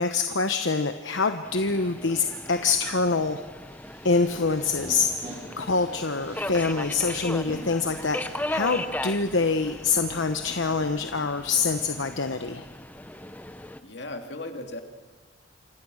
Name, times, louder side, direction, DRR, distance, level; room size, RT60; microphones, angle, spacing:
voice 1, 0.0-3.4 4.0-5.1 5.6-12.6, left 4 dB, 75° left, 7 dB, 1.1 m, -25 dB
Subway metro underground, 1.4-13.8, left 1 dB, 10° left, 0.8 m, -38 dB
sound 1, 3.6-9.7, right 1 dB, 30° right, 7.6 m, -46 dB
voice 2, 13.8-14.8, left 2 dB, 60° left, 4 dB, 2.9 m, -37 dB
27.5 x 26.0 x 6.5 m, 1.4 s
head